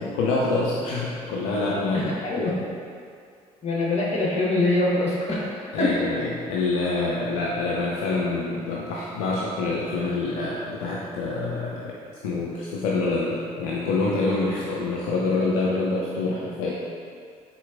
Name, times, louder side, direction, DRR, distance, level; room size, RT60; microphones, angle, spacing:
voice 1, 0.0-2.0 2.4-2.6 5.7-11.9 12.2-16.8, left 3 dB, 65° left, -4 dB, 0.4 m, -26 dB
voice 2, 1.9-2.5 3.6-6.0, left 2 dB, 35° left, -5 dB, 1.1 m, -24 dB
4.3 x 3.5 x 2.5 m, 2.3 s
figure-of-eight pair, 50°, 19 cm